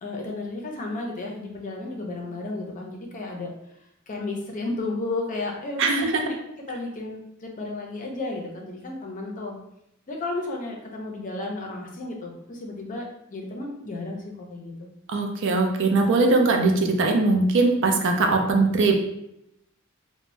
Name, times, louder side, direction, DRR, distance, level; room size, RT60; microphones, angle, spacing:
voice 1, 0.0-3.5 4.1-6.3 6.7-9.6 10.1-14.7, left 2 dB, 40° left, 0 dB, 0.5 m, -33 dB
voice 2, 5.8-6.2 15.1-19.0, right 3 dB, 60° right, 2 dB, 0.4 m, -21 dB
2.6 x 2.1 x 3.1 m, 0.81 s
head